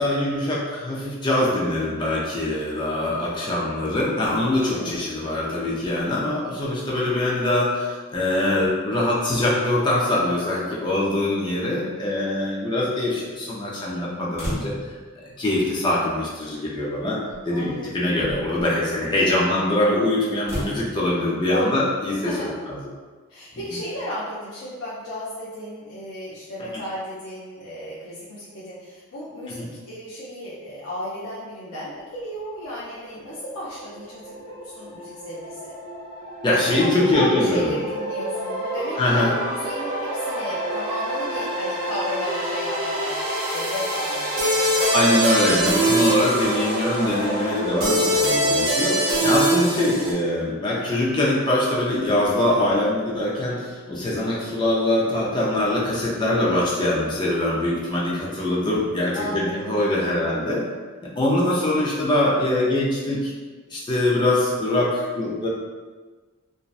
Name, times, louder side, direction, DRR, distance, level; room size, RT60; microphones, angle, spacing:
voice 1, 0.0-14.7 15.2-17.2 17.5-22.3 29.6-29.7 36.4-37.7 39.0-39.3 44.9-60.6 61.0-63.3 63.7-65.5, left 1 dB, 20° left, -5 dB, 0.4 m, -23 dB
voice 2, 4.7-5.1 17.5-17.9 19.1-19.6 21.5-21.8 22.2-22.5 23.3-35.7 36.5-45.0 59.1-60.3, equal, 85° left, -9 dB, 0.5 m, -34 dB
sound 1, 14.4-15.1 16.3-16.4 17.3-17.5 18.0-18.6 20.4-20.8, equal, 10° right, 0.9 m, -32 dB
sound 2, 33.9-50.1, right 1 dB, 80° right, 0.8 m, -25 dB
2.6 x 2.1 x 2.4 m, 1.4 s
head